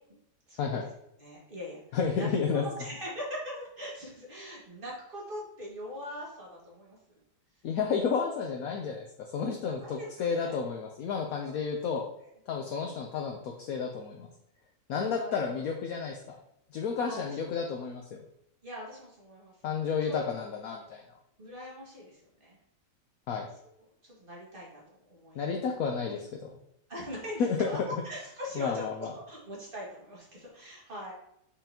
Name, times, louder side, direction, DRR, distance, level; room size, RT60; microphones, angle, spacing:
voice 1, 0.5-0.8 1.2-2.3 2.6-7.0 9.5-10.6 11.4-11.8 14.9-15.7 17.0-17.8 18.6-20.2 21.4-22.6 24.0-24.8 25.1-25.5 26.9-31.1, equal, 30° right, -4 dB, 2.2 m, -42 dB
voice 2, 1.9-2.6 7.6-9.1 9.3-12.0 12.5-14.3 14.9-16.4 16.7-18.2 19.6-21.0 23.3-23.5 25.3-26.5 27.4-27.7 28.6-29.1, left 6 dB, 65° left, 2 dB, 1.1 m, -31 dB
6.7 x 5.6 x 2.9 m, 0.78 s
omnidirectional pair, 1.8 m